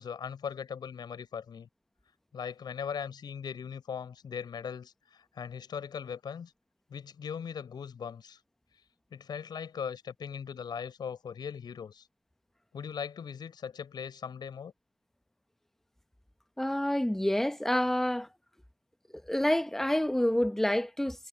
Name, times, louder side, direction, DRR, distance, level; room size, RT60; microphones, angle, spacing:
voice 1, 0.0-1.7 2.3-6.5 6.9-8.4 9.1-12.1 12.7-14.7, left 7 dB, 30° left, 7.2 m, -39 dB
voice 2, 16.6-18.3 19.3-21.3, left 1 dB, ahead, 1.4 m, -28 dB
hypercardioid pair, 90°, 15 cm